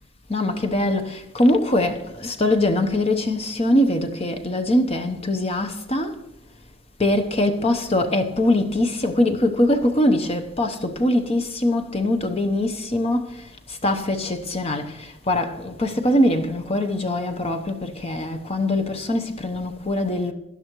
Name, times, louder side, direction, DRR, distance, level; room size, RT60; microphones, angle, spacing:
voice 1, 0.3-6.2 7.0-20.3, left 1 dB, 30° left, 0.9 m, -22 dB
17.0 x 11.5 x 3.1 m
head